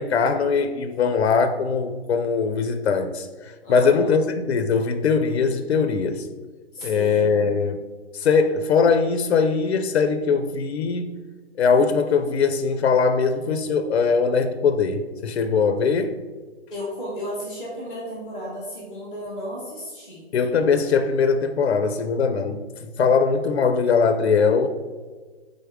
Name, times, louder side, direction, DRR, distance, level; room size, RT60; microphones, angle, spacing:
voice 1, 0.0-6.3 6.8-7.8 8.1-11.2 11.6-16.1 20.3-22.6 22.9-24.7, left 5 dB, 85° left, 8 dB, 0.5 m, -21 dB
voice 2, 3.6-4.2 6.7-7.4 16.7-20.3, equal, ahead, -17 dB, 0.3 m, -34 dB
3.8 x 3.5 x 3.4 m, 1.4 s
hypercardioid pair, 145°, 32 cm